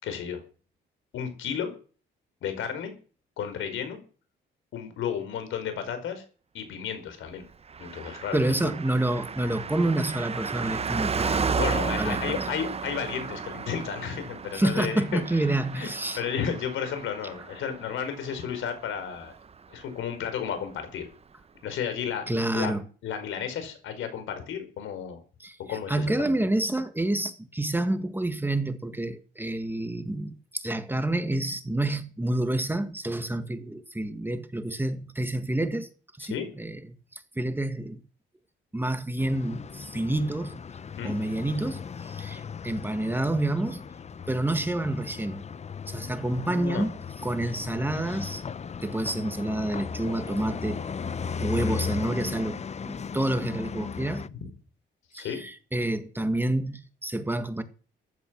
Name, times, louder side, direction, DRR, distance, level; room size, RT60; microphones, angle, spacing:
voice 1, 0.0-0.4 1.1-1.7 2.4-2.9 3.4-4.0 4.7-6.2 6.5-7.4 7.8-8.7 11.6-15.4 15.7-15.9 16.1-19.3 19.7-21.1 21.6-22.8 23.0-25.2 25.7-26.3 36.2-36.5 41.0-41.2 46.3-46.9 51.6-51.8 54.3-54.4 55.1-55.4, left 8 dB, 80° left, 5.0 m, -33 dB
Car passing by, 7.7-19.5 19.8-19.9, right 5 dB, 30° right, 0.9 m, -33 dB
voice 2, 8.3-11.6 12.0-12.5 14.5-16.2 22.3-22.8 25.4-35.9 36.2-36.8 37.1-38.0 38.7-40.6 41.0-43.8 44.3-45.4 45.9-46.9 47.2-48.4 48.8-50.8 51.4-54.2 55.1-57.6, right 1 dB, 10° right, 1.7 m, -28 dB
sound 1, 39.2-54.3, left 6 dB, 35° left, 0.7 m, -36 dB
14.5 x 11.5 x 6.3 m
cardioid pair, 90°, 20 cm